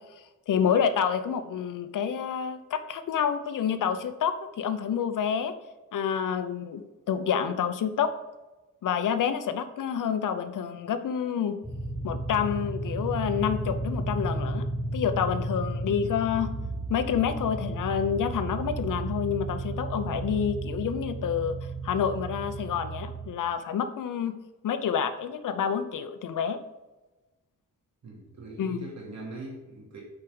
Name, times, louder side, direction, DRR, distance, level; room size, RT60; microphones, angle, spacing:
voice 1, 0.5-5.5 5.9-6.8 7.1-8.1 8.8-11.6 12.0-14.6 14.9-16.5 16.9-21.6 21.8-24.3 24.6-26.6 28.6-28.8, left 8 dB, 80° left, 10 dB, 0.8 m, -28 dB
sound 1, 11.6-23.3, right 2 dB, ahead, 1.1 m, -33 dB
voice 2, 28.0-30.0, right 2 dB, 60° right, -3 dB, 2.7 m, -41 dB
8.2 x 4.7 x 5.2 m, 1.1 s
wide cardioid pair, 135°, 31 cm